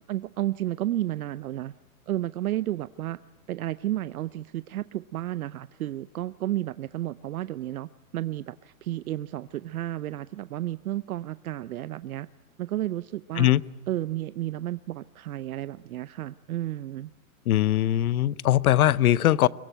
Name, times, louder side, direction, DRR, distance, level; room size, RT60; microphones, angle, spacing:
voice 1, 0.1-1.7 2.1-3.2 3.5-12.3 12.6-13.5 13.9-17.1, right 14 dB, 75° right, 15 dB, 0.7 m, -32 dB
voice 2, 17.5-19.5, left 13 dB, 75° left, 20 dB, 0.8 m, -21 dB
23.0 x 21.0 x 9.1 m, 1.2 s
hypercardioid pair, 170°, 43 cm